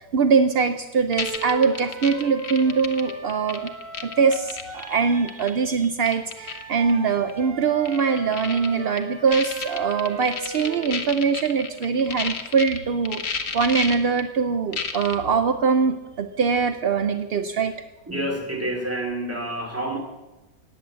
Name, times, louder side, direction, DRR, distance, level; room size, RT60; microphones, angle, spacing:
voice 1, 0.0-3.7 4.0-17.7, right 5 dB, 60° right, 9 dB, 0.6 m, -22 dB
sound 1, 1.1-4.9 5.3-5.5 5.8-6.6 6.9-7.0 7.3-7.4 7.9-8.7 9.0-9.1 9.3-12.8 13.1-14.2 14.7-15.2, left 5 dB, 40° left, 1.3 m, -31 dB
sound 2, 1.1-5.4 6.3-11.0, right 2 dB, 85° right, 3.5 m, -38 dB
voice 2, 18.1-20.0, right 1 dB, 10° right, 1 dB, 2.6 m, -28 dB
17.0 x 9.6 x 7.5 m, 1.1 s
omnidirectional pair, 1.8 m